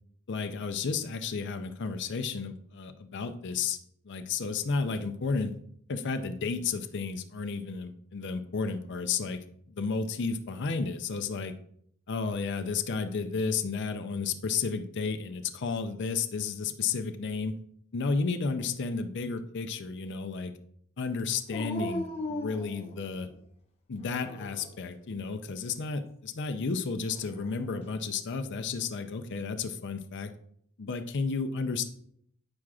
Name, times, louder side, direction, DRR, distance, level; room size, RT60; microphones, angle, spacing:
voice 1, 0.3-3.8 4.0-5.5 5.9-9.4 9.7-11.5 12.1-17.5 17.9-20.5 21.0-23.3 23.9-30.3 30.8-31.9, left 4 dB, 50° left, 8 dB, 0.5 m, -32 dB
Dog, 21.5-23.4 24.0-24.8 27.1-27.9, left 2 dB, 25° left, 0.8 m, -38 dB
8.6 x 6.2 x 2.4 m, 0.68 s
head